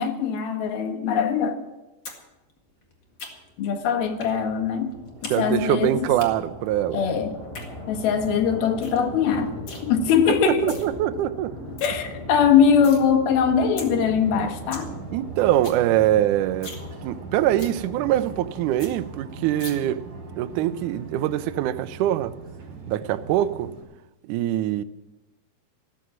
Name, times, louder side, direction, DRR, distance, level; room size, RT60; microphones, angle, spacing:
voice 1, 0.0-1.6 3.6-5.0 5.2-6.2 6.9-7.4 7.9-10.8 11.8-14.9, left 7 dB, 80° left, 3.2 m, -22 dB
sound 1, 2.0-2.2 2.5-3.6 4.2-4.4 4.7-5.4 5.6-6.3 7.3-7.7 8.1-8.2 8.5-8.6 8.8-9.0 9.3-9.8 10.4-10.8 11.3-11.4 11.6-11.9 12.3-13.0 13.4-13.5 13.8-13.9 14.3-14.4 14.5-14.9 15.2-15.3 15.5-15.8 16.1-16.2 16.5-16.8 17.2-17.3 17.6-17.8 18.2-18.3 18.5-18.6 18.8-18.9 19.6-19.7, left 3 dB, 40° left, 2.1 m, -39 dB
sound 2, 3.1-19.4, left 1 dB, 10° left, 3.5 m, -40 dB
voice 2, 5.3-7.0 10.4-11.5 15.1-16.7 17.0-20.0 20.4-22.3 22.9-23.7 24.3-24.8, right 13 dB, 85° right, 1.8 m, -23 dB
sound 3, 13.8-23.8, right 3 dB, 45° right, 3.9 m, -40 dB
14.5 x 13.0 x 6.2 m
omnidirectional pair, 4.3 m